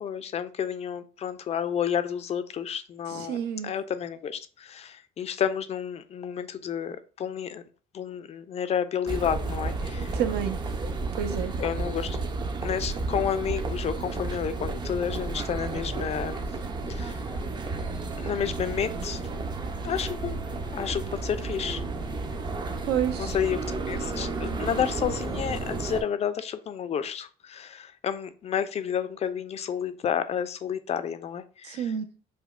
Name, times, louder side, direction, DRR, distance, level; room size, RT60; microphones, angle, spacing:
voice 1, 0.0-3.4 3.6-7.6 7.9-10.1 11.6-12.2 12.6-16.4 16.9-17.2 18.2-19.2 19.8-20.4 20.7-21.8 23.2-31.9, left 8 dB, 40° left, 0.4 m, -30 dB
voice 2, 3.1-3.7 10.0-10.6 11.2-11.5 22.9-23.4 31.6-32.1, right 9 dB, 75° right, 0.6 m, -29 dB
sound 1, 9.1-26.0, right 3 dB, 25° right, 0.4 m, -32 dB
4.9 x 2.1 x 2.4 m
cardioid pair, 110°, 17 cm